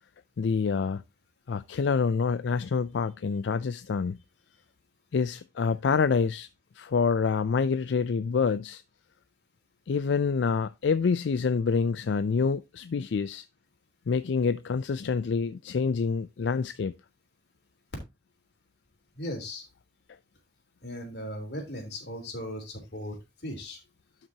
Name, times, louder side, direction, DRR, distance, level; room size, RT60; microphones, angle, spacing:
voice 1, 0.4-1.0 1.5-4.2 5.1-6.5 6.8-8.8 9.9-13.5 14.1-16.9, left 5 dB, 90° left, 0.4 m, -27 dB
voice 2, 19.2-19.7 20.8-23.2 23.4-23.8, left 1 dB, 65° left, 3.5 m, -37 dB
12.0 x 5.9 x 2.8 m
head